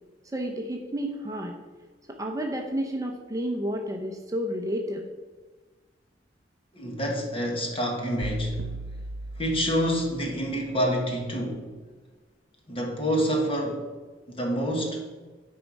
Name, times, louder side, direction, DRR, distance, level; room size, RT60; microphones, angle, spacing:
voice 1, 0.2-1.6 2.1-5.1, equal, 20° right, 2 dB, 0.7 m, -31 dB
voice 2, 6.7-8.6 9.4-11.6 12.7-13.9 14.3-15.1, equal, 30° left, 1 dB, 1.6 m, -27 dB
sound 1, 8.2-10.4, right 3 dB, 70° right, 0.3 m, -37 dB
9.3 x 4.8 x 5.3 m, 1.3 s
head